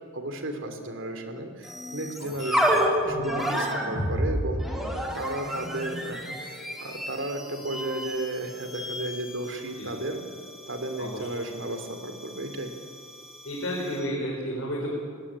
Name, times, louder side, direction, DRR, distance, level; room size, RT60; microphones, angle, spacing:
voice 1, 0.1-10.2 10.7-12.7, right 1 dB, 70° right, 6 dB, 2.9 m, -34 dB
sound 1, 1.6-14.1, equal, ahead, 3.6 m, -31 dB
voice 2, 13.4-15.0, equal, 75° left, -3 dB, 4.6 m, -32 dB
18.5 x 17.0 x 9.9 m, 2.2 s
head